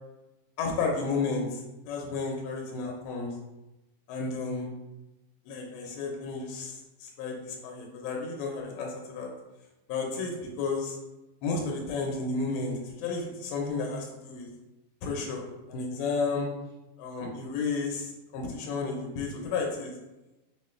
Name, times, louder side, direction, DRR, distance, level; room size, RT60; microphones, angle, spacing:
voice 1, 0.6-3.3 4.1-4.7 5.5-9.3 9.9-10.3 10.6-11.0 11.4-14.5 15.0-16.5 17.0-19.9, left 4 dB, 85° left, 0 dB, 2.6 m, -32 dB
6.2 x 2.2 x 3.2 m, 1.0 s
omnidirectional pair, 4.3 m